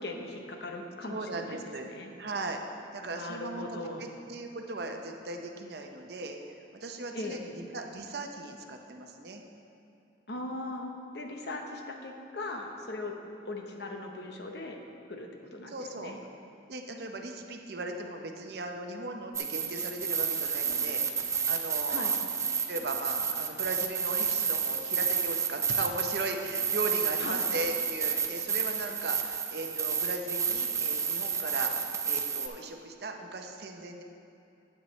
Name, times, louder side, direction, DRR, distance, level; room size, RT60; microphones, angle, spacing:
voice 1, 0.0-1.6 1.9-2.1 3.1-4.1 7.1-7.4 10.3-13.1 13.5-14.8 15.1-16.2 21.9-22.1 27.2-27.5, left 2 dB, 65° left, 2 dB, 0.9 m, -39 dB
voice 2, 1.0-1.9 2.2-2.6 2.9-9.4 15.7-16.2 16.7-21.0 21.4-22.1 22.7-34.0, right 2 dB, 60° right, 4 dB, 0.7 m, -38 dB
sound 1, 19.3-32.5, right 6 dB, 15° right, 0.3 m, -30 dB
9.2 x 8.6 x 3.1 m, 2.7 s
head